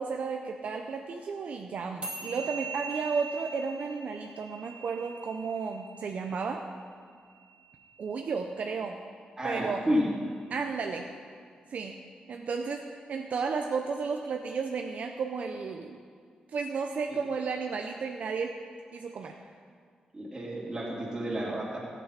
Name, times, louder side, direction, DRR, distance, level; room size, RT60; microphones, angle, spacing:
voice 1, 0.0-6.7 8.0-9.0 9.4-9.9 10.5-11.1 11.7-12.0 12.3-16.0 16.5-18.6 18.9-19.4, right 5 dB, 65° right, 3 dB, 0.6 m, -33 dB
sound 1, 2.0-8.6, right 4 dB, 40° right, 2.5 m, -43 dB
voice 2, 9.4-10.1 17.1-17.2 20.1-21.8, equal, 25° right, -5 dB, 3.2 m, -31 dB
13.5 x 8.4 x 5.7 m, 2.1 s
wide cardioid pair, 125°, 3 cm